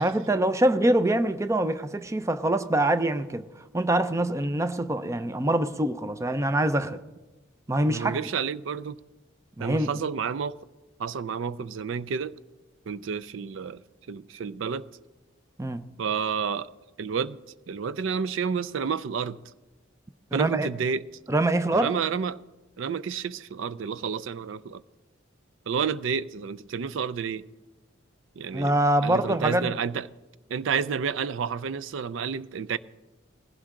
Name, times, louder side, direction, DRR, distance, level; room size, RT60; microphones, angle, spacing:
voice 1, 0.0-3.5 3.7-7.0 7.7-8.2 9.6-9.9 15.6-15.8 20.3-20.7 21.3-21.9 28.5-29.7, right 1 dB, 15° right, 0.5 m, -24 dB
voice 2, 7.9-9.0 9.6-10.6 11.0-12.3 12.9-13.8 14.1-14.8 16.0-16.7 17.0-17.4 17.7-19.4 20.3-21.0 21.7-22.4 22.8-24.8 25.7-27.4 28.4-28.7 29.0-30.1 30.5-32.8, right 6 dB, 75° right, 0.4 m, -30 dB
19.5 x 16.0 x 3.7 m
head